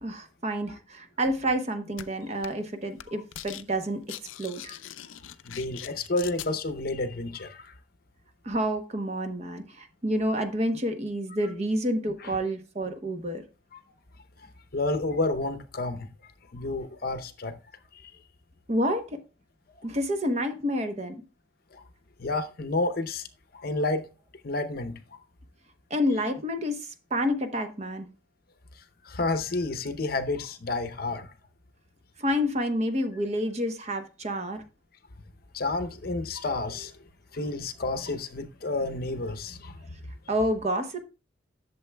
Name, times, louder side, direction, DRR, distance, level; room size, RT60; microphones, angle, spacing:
voice 1, 0.0-4.0 4.4-4.8 8.4-13.4 18.7-19.2 19.8-21.2 25.9-28.1 32.2-34.6 40.3-41.0, equal, 35° right, 0.9 m, -29 dB
sound 1, 2.0-2.1 2.4-2.7 3.0-3.6 3.9-6.5, left 12 dB, 85° left, 0.5 m, -41 dB
voice 2, 5.4-7.7 12.2-12.3 14.7-16.1 16.5-17.5 18.0-18.1 21.7-21.8 22.2-23.2 23.5-24.1 24.4-24.9 29.0-31.3 35.5-36.9 37.3-39.7, left 2 dB, 50° left, 0.7 m, -30 dB
11.5 x 6.9 x 2.2 m
head